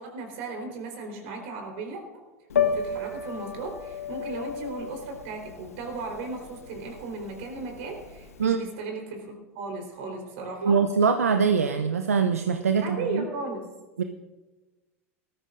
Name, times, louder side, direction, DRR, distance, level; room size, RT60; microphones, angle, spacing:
voice 1, 0.0-2.2 2.6-10.8 12.8-13.7, right 3 dB, 60° right, 2 dB, 3.9 m, -36 dB
Piano, 2.5-8.4, left 6 dB, 85° left, 1.0 m, -32 dB
voice 2, 10.6-13.2 14.0-14.1, right 6 dB, 85° right, 7 dB, 0.6 m, -23 dB
19.0 x 13.5 x 2.6 m, 1.2 s
hypercardioid pair, 90°, 8 cm